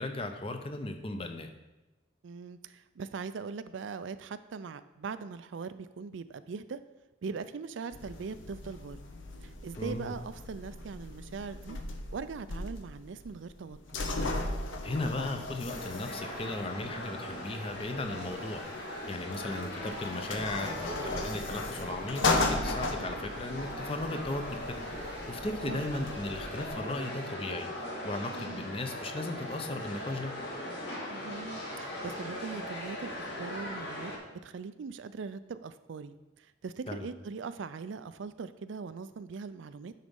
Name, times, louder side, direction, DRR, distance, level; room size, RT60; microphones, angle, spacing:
voice 1, 0.0-1.5 9.8-10.1 14.8-30.3 36.9-37.1, left 2 dB, 30° left, 6 dB, 0.6 m, -36 dB
voice 2, 2.2-6.8 7.2-9.0 9.4-11.8 12.1-14.0 25.7-25.8 28.3-28.7 31.1-39.9, right 5 dB, 75° right, 13 dB, 0.4 m, -41 dB
sound 1, 7.9-26.7, left 2 dB, 85° left, 0.9 m, -37 dB
sound 2, 15.7-34.2, left 1 dB, 65° left, 2.0 m, -40 dB
9.4 x 4.1 x 5.3 m, 1.0 s
head